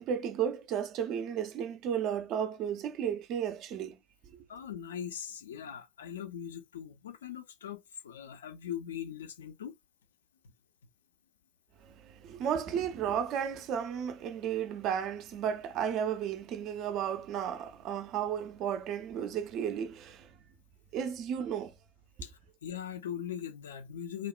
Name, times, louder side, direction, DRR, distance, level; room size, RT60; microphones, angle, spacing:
voice 1, 0.0-4.0 4.3-4.4 11.8-20.3 20.9-21.7, right 8 dB, 50° right, 0.4 m, -33 dB
voice 2, 4.5-9.7 22.2-22.3 22.6-24.3, left 9 dB, 70° left, 0.3 m, -40 dB
3.0 x 2.0 x 2.4 m
figure-of-eight pair, 65°, 0 cm